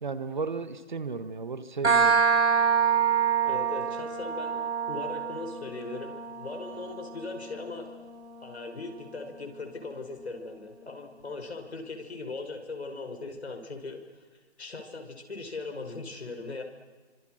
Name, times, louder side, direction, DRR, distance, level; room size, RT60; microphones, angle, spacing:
voice 1, 0.0-2.2, right 4 dB, 45° right, 12 dB, 1.6 m, -34 dB
sound 1, 1.8-9.3, right 6 dB, 85° right, 5.0 m, -27 dB
voice 2, 3.5-7.9 8.4-14.0 14.6-16.6, left 3 dB, 75° left, 4 dB, 5.6 m, -39 dB
29.0 x 25.5 x 6.5 m, 1.4 s
hypercardioid pair, 175°, 33 cm